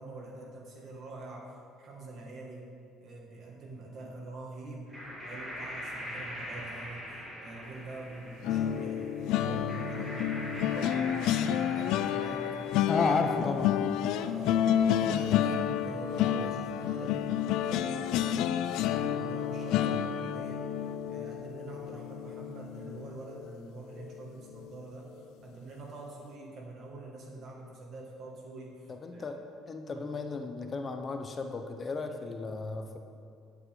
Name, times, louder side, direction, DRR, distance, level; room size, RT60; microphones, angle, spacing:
voice 1, 0.0-1.5 1.8-2.7 3.0-4.9 5.2-12.8 14.1-20.6 21.1-25.1 25.4-29.3 29.9-30.1 32.0-32.2, right 2 dB, 55° right, -1 dB, 1.9 m, -45 dB
sound 1, 4.9-13.8, equal, 15° right, 2.2 m, -43 dB
sound 2, 8.4-23.6 24.0-24.2 24.5-24.7, left 10 dB, 80° left, 0.3 m, -30 dB
voice 2, 12.9-14.2 28.9-29.4 29.7-33.0, left 4 dB, 30° left, 5 dB, 0.6 m, -33 dB
9.7 x 8.2 x 3.7 m, 2.3 s
cardioid pair, 110°, 0 cm